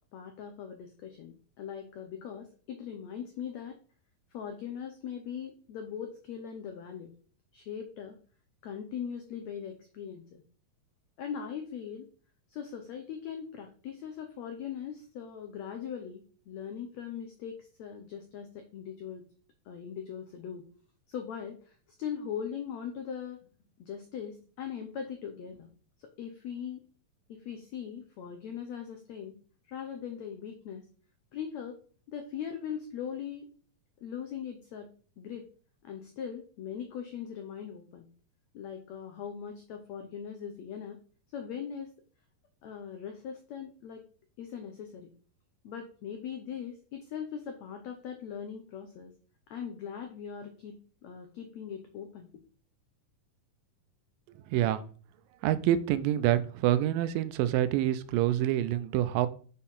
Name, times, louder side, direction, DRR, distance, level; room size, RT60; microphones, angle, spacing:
voice 1, 0.1-3.8 4.3-7.1 7.5-8.2 8.6-10.4 11.2-12.1 12.5-19.2 19.7-20.6 21.1-23.4 23.8-25.7 26.0-26.8 27.3-29.3 29.7-30.9 31.3-31.8 32.1-33.5 34.0-34.9 35.2-35.5 35.8-38.1 38.5-41.0 41.3-41.9 42.6-44.1 44.4-45.1 45.6-49.1 49.5-52.3, left 8 dB, 80° left, 5 dB, 1.5 m, -40 dB
voice 2, 54.5-54.9 55.4-59.3, right 12 dB, 80° right, 13 dB, 2.1 m, -26 dB
6.5 x 4.4 x 5.5 m, 0.42 s
omnidirectional pair, 4.3 m